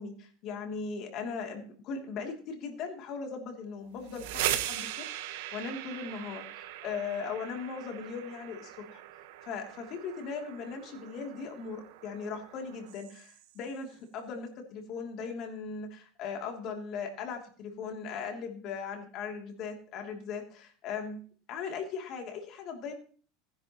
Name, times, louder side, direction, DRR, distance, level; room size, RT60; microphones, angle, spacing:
voice 1, 0.0-9.0 9.4-21.2 21.5-22.9, left 5 dB, 50° left, 2 dB, 2.9 m, -39 dB
sound 1, 3.9-13.7, right 12 dB, 80° right, 1.3 m, -39 dB
19.0 x 10.0 x 3.1 m, 0.43 s
supercardioid pair, 130°, 0 cm